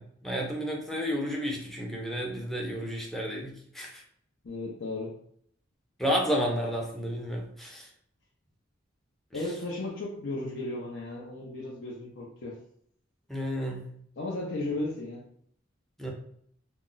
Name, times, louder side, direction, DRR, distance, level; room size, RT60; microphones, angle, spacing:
voice 1, 0.0-4.0 6.0-7.9 13.3-13.9 16.0-16.1, equal, ahead, -2 dB, 0.5 m, -31 dB
voice 2, 4.4-5.2 9.3-12.6 14.2-15.3, left 2 dB, 70° left, -3 dB, 0.5 m, -35 dB
2.3 x 2.1 x 3.7 m, 0.65 s
head